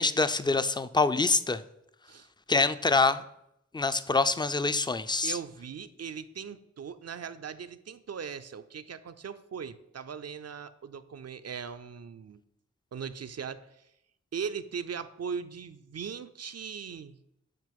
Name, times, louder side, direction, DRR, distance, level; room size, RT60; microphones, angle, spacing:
voice 1, 0.0-1.6 2.5-3.2 3.7-5.4, left 3 dB, 15° left, 12 dB, 0.4 m, -25 dB
voice 2, 5.2-12.4 12.9-13.8 14.3-17.2, right 6 dB, 55° right, 11 dB, 0.5 m, -39 dB
8.9 x 3.0 x 5.2 m, 0.79 s
cardioid pair, 40°, 29 cm